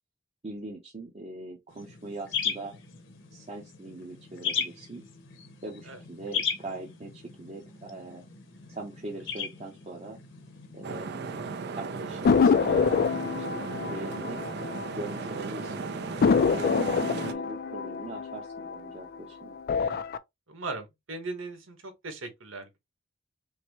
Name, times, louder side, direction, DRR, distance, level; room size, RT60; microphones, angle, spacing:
voice 1, 0.4-2.8 3.3-5.0 5.6-8.2 8.7-10.2 10.7-11.4 11.7-14.4 14.9-15.9 16.5-19.6, right 2 dB, 35° right, 0.8 m, -41 dB
sound 1, 1.7-11.0, left 6 dB, 65° left, 0.9 m, -37 dB
sound 2, 10.8-17.3, right 4 dB, 60° right, 0.5 m, -36 dB
sound 3, 12.2-15.3 15.6-15.7 16.2-19.1 19.6-20.2, left 5 dB, 50° left, 0.3 m, -26 dB
voice 2, 16.5-16.8 19.8-20.0 20.5-22.8, right 3 dB, 85° right, 1.3 m, -39 dB
5.7 x 2.1 x 3.1 m
head